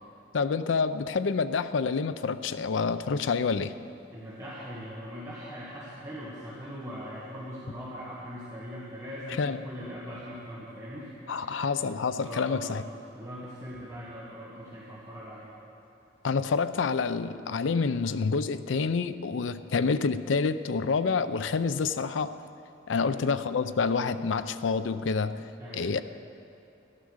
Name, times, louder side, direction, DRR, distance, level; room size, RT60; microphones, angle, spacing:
voice 1, 0.3-3.7 9.4-9.6 11.3-12.8 16.2-22.3 22.9-25.5 25.7-26.0, left 5 dB, 80° left, 12 dB, 0.5 m, -28 dB
voice 2, 4.1-12.9 13.1-15.5 22.9-23.2 25.6-25.9, equal, 20° right, -8 dB, 1.9 m, -41 dB
14.0 x 10.5 x 6.4 m, 2.7 s
head